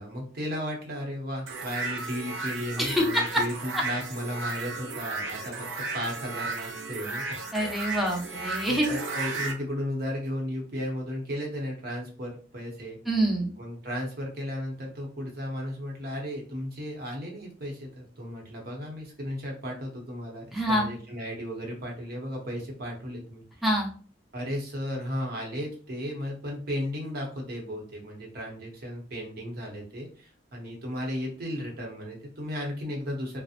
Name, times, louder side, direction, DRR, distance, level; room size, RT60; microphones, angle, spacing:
voice 1, 0.0-5.7 5.9-7.4 8.7-13.0 13.6-23.4 24.3-33.4, equal, 55° right, 0 dB, 0.8 m, -35 dB
sound 1, 1.5-9.5, right 3 dB, 75° right, 0.5 m, -34 dB
voice 2, 7.5-9.0 13.1-13.5 20.5-20.9 23.6-23.9, right 1 dB, ahead, -2 dB, 0.5 m, -26 dB
2.8 x 2.0 x 2.4 m, 0.41 s
head